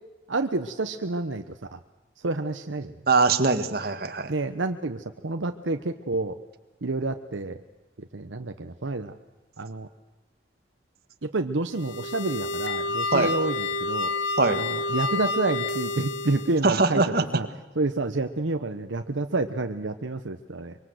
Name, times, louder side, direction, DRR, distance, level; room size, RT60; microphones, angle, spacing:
voice 1, 0.3-1.8 2.2-2.9 4.3-6.4 6.8-7.6 8.0-9.1 9.6-9.9 11.2-14.1 14.6-17.5 17.8-20.8, right 2 dB, 80° right, 7 dB, 0.9 m, -29 dB
voice 2, 3.1-4.3 13.1-13.3 14.4-14.6 16.6-17.3, right 3 dB, 50° right, 7 dB, 1.8 m, -22 dB
sound 1, 11.7-16.6, left 2 dB, 75° left, 1.6 m, -29 dB
24.5 x 24.0 x 7.9 m, 1.1 s
head